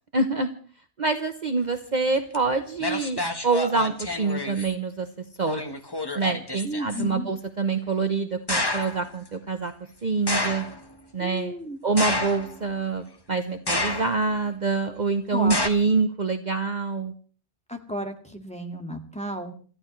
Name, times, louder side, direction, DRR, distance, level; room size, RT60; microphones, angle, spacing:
voice 1, 0.1-0.5 1.0-3.9 4.2-5.1 5.4-5.7 6.2-9.7 10.0-10.6 11.1-11.5 11.8-17.1, right 4 dB, 40° right, 7 dB, 1.0 m, -26 dB
sound 1, 2.3-2.4 2.8-4.7 5.4-7.0 8.5-9.0 10.3-10.8 12.0-12.7 13.7-14.3 15.5-15.7, left 2 dB, 20° left, 1.3 m, -29 dB
voice 2, 6.6-7.3 11.2-11.8 15.3-15.6 17.7-19.5, equal, 5° left, 3 dB, 2.0 m, -33 dB
28.5 x 14.0 x 3.2 m, 0.43 s
omnidirectional pair, 1.2 m